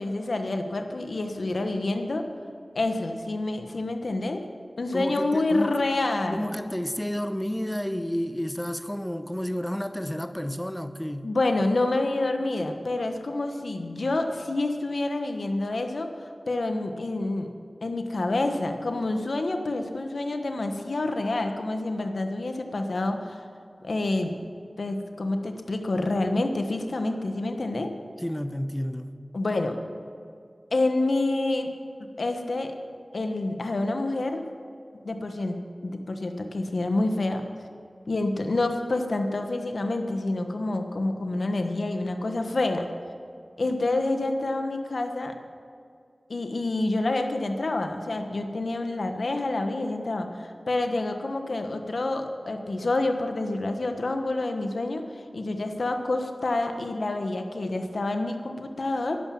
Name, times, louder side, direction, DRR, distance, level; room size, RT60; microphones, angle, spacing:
voice 1, 0.0-2.2 2.7-4.4 4.8-6.5 11.2-16.1 16.5-17.5 17.8-23.4 23.8-24.4 24.8-27.9 29.3-29.8 30.7-31.7 32.2-32.7 33.1-34.4 35.0-35.6 35.8-37.4 38.1-42.9 43.6-45.3 46.3-59.2, left 2 dB, 80° left, 5 dB, 1.2 m, -28 dB
voice 2, 4.9-5.9 6.3-11.3 28.2-29.1, equal, 10° left, 10 dB, 0.8 m, -31 dB
11.5 x 11.0 x 7.3 m, 2.3 s
wide cardioid pair, 55°, 0 cm